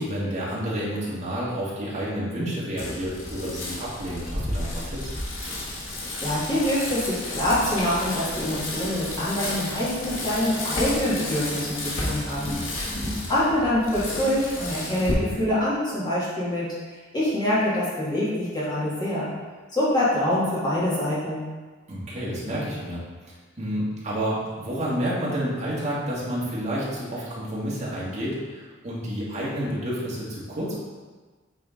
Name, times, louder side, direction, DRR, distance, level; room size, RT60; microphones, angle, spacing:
voice 1, 0.0-5.1 21.9-23.0 23.6-30.8, equal, 35° right, -7 dB, 1.8 m, -29 dB
Bicycle, 2.8-15.1, left 1 dB, 80° left, 1.7 m, -32 dB
voice 2, 5.9-12.9 13.3-16.7 17.1-19.3 19.7-21.4, left 1 dB, 20° left, -10 dB, 1.9 m, -25 dB
8.4 x 3.8 x 3.8 m, 1.4 s
head